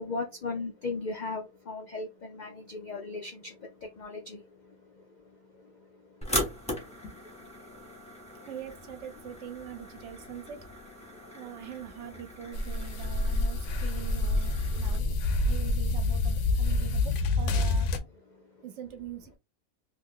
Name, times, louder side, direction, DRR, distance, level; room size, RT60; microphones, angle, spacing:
voice 1, 0.0-8.5 11.0-11.4 14.7-14.8 18.3-18.6, left 3 dB, 85° left, 0.4 m, -40 dB
sound 1, 6.2-15.0, equal, 5° left, 0.8 m, -39 dB
voice 2, 8.5-10.6 11.3-15.2 15.4-17.9 18.6-19.4, right 9 dB, 65° right, 0.8 m, -43 dB
sound 2, 12.5-18.0, left 2 dB, 65° left, 0.8 m, -27 dB
2.7 x 2.4 x 3.5 m
omnidirectional pair, 1.5 m